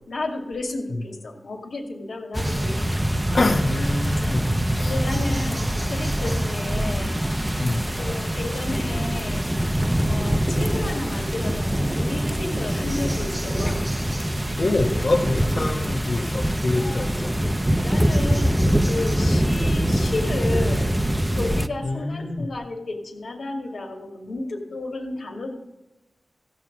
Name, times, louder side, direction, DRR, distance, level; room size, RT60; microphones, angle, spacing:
voice 1, 0.1-3.2 4.8-7.2 8.0-9.5 10.1-13.9 16.7-17.0 17.3-17.5 17.8-20.9 21.3-25.5, left 2 dB, 90° left, 3 dB, 2.2 m, -32 dB
sound 1, 2.3-21.7, equal, 10° right, 0.6 m, -24 dB
voice 2, 3.3-5.0 5.4-5.6 7.6-8.0 13.7-13.8 14.6-17.3 21.8-22.5, left 2 dB, 60° left, -1 dB, 1.2 m, -25 dB
15.5 x 6.0 x 8.4 m, 1.0 s
wide cardioid pair, 105°, 0 cm